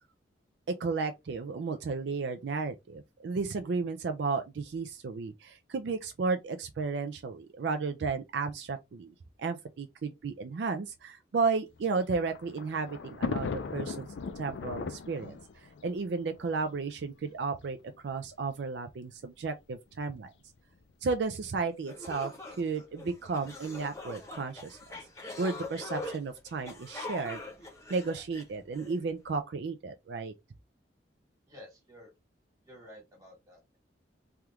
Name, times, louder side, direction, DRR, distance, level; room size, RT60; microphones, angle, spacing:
voice 1, 0.7-14.1 14.4-17.8 18.0-20.3 21.0-24.8 25.4-27.4 27.9-30.3, right 4 dB, 70° right, 0.4 m, -33 dB
Thunder, 11.8-17.1 17.9-18.0 18.2-18.3 19.4-19.7, left 4 dB, 75° left, 0.4 m, -38 dB
sound 1, 21.5-21.6 21.9-29.0, left 2 dB, 15° left, 0.8 m, -43 dB
voice 2, 31.5-32.1 32.6-33.8, left 1 dB, 20° right, 1.5 m, -52 dB
3.4 x 2.3 x 2.9 m
head